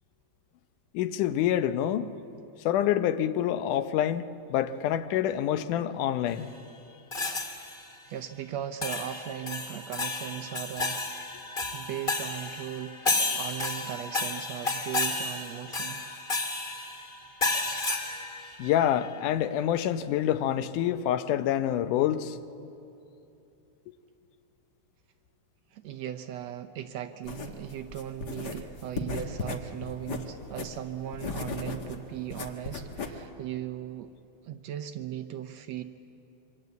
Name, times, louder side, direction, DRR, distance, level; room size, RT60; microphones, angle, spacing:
voice 1, 0.9-2.1 2.7-6.5 18.6-22.4, left 11 dB, 85° left, 2.3 m, -27 dB
sound 1, 7.1-7.9 8.8-19.1, left 2 dB, 20° left, 1.6 m, -32 dB
voice 2, 8.1-11.1 11.7-16.0 25.7-34.1 34.4-35.8, right 10 dB, 75° right, 1.7 m, -38 dB
sound 2, 27.2-33.2, left 3 dB, 45° left, 1.6 m, -37 dB
27.0 x 24.5 x 8.2 m
omnidirectional pair, 3.6 m